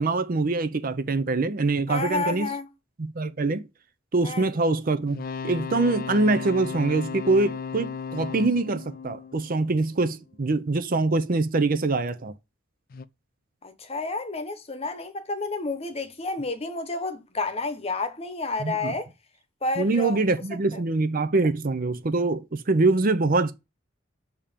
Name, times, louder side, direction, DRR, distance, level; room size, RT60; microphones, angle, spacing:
voice 1, 0.0-2.5 3.0-3.6 4.1-12.3 18.6-18.9 19.8-23.5, right 3 dB, 45° right, 0.6 m, -24 dB
voice 2, 1.9-2.7 4.2-4.5 13.6-19.1 19.6-20.2 20.7-20.8, left 3 dB, 30° left, 1.0 m, -30 dB
sound 1, 5.1-10.1 12.9-13.0, left 6 dB, 45° left, 0.4 m, -35 dB
7.1 x 2.9 x 5.0 m
head